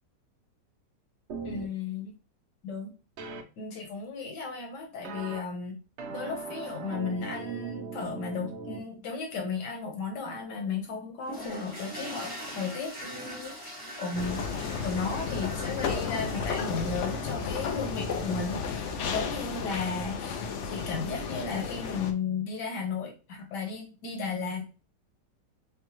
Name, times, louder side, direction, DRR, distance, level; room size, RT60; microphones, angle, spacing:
sound 1, 1.3-1.7 3.2-3.4 5.0-5.4 6.0-8.8, right 4 dB, 75° right, 0.6 m, -39 dB
voice 1, 1.4-2.1 2.6-2.9 3.6-5.8 6.1-13.5 14.0-24.7, left 5 dB, 75° left, 3 dB, 1.6 m, -35 dB
sound 2, 11.2-19.7, equal, 15° left, 0.9 m, -43 dB
sound 3, 14.1-22.1, left 5 dB, 90° left, 0.6 m, -33 dB
5.8 x 2.2 x 2.9 m, 0.33 s
omnidirectional pair, 1.9 m